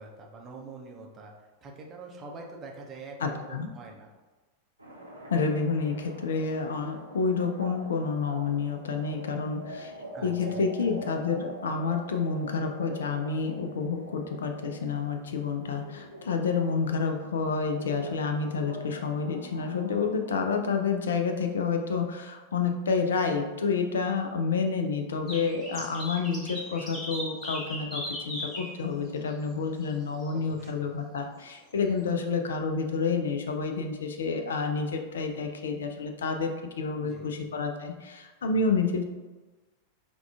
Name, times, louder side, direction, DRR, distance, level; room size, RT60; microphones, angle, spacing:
voice 1, 0.0-4.1 10.1-11.0 30.3-30.9 37.0-37.5, right 3 dB, 25° right, 0 dB, 0.5 m, -45 dB
voice 2, 3.2-3.7 5.3-9.9 10.2-39.0, left 5 dB, 65° left, 5 dB, 0.3 m, -29 dB
sound 1, 4.8-20.7, right 1 dB, 85° right, 0.5 m, -44 dB
sound 2, 25.3-28.7 29.3-29.4 29.8-29.9 30.2-30.3, left 1 dB, 25° left, 1.1 m, -37 dB
4.7 x 2.2 x 2.3 m, 1.2 s
figure-of-eight pair, 90°, 0 cm